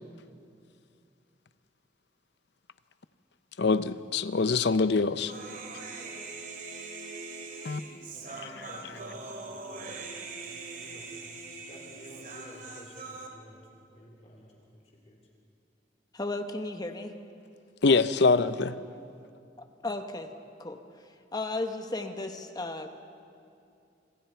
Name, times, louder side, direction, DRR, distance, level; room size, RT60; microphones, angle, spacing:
voice 1, 3.6-5.3 7.6-7.8 8.4-8.9 17.8-18.8, left 4 dB, 65° left, 13 dB, 0.7 m, -25 dB
Human voice, 5.3-13.3, right 3 dB, 50° right, 2.7 m, -42 dB
voice 2, 8.1-9.9 10.4-11.3 11.6-13.6 13.9-14.5 15.1-15.2, left 1 dB, 35° left, -1 dB, 3.2 m, -51 dB
voice 3, 16.1-17.1 19.8-20.3 20.6-20.8 21.3-22.9, left 2 dB, 20° left, 7 dB, 1.1 m, -34 dB
27.0 x 26.0 x 4.6 m, 2.6 s
head